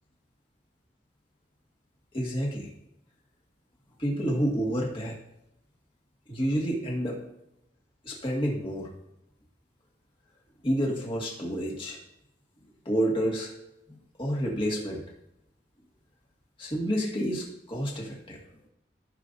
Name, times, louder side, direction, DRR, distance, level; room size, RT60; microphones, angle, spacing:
voice 1, 2.1-2.7 4.0-5.2 6.3-7.2 8.0-8.9 10.6-12.0 12.9-13.5 13.9-15.0 16.6-18.4, equal, 30° left, -2 dB, 2.0 m, -29 dB
16.0 x 5.7 x 2.7 m, 0.86 s
head